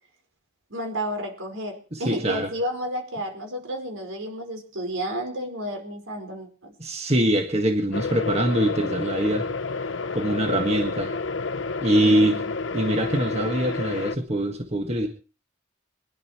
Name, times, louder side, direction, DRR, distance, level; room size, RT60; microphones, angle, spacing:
voice 1, 0.7-6.7 12.0-12.4, equal, 85° right, 4 dB, 5.0 m, -31 dB
voice 2, 1.9-2.5 6.8-9.4 10.1-11.1 11.8-12.4 12.7-15.1, right 1 dB, 30° right, 5 dB, 1.6 m, -23 dB
sound 1, 7.9-14.2, left 4 dB, 70° left, 0.9 m, -29 dB
23.0 x 11.5 x 4.5 m, 0.38 s
head